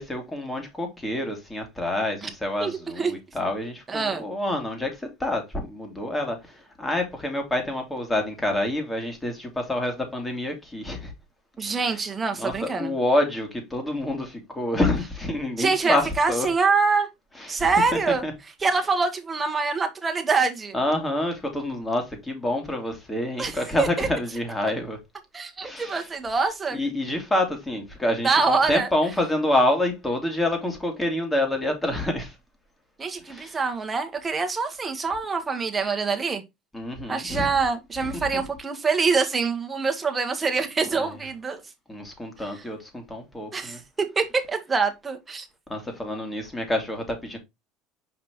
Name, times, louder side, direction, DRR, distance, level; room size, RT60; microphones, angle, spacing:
voice 1, 0.0-11.1 11.7-12.0 12.4-16.5 17.4-18.3 20.7-25.0 25.6-26.1 26.7-32.4 33.2-33.6 36.7-37.5 38.0-38.4 41.0-41.1 41.9-43.8 45.7-47.4, left 1 dB, 15° left, 2.8 m, -27 dB
voice 2, 2.6-3.1 3.9-4.2 11.6-12.9 15.6-17.1 17.5-18.2 18.6-20.7 23.4-24.1 25.3-26.8 28.2-28.9 33.0-36.4 37.1-41.6 42.4-42.6 43.5-43.8 44.1-45.5, right 4 dB, 20° right, 1.6 m, -25 dB
6.0 x 5.0 x 3.1 m
supercardioid pair, 90°, 0 cm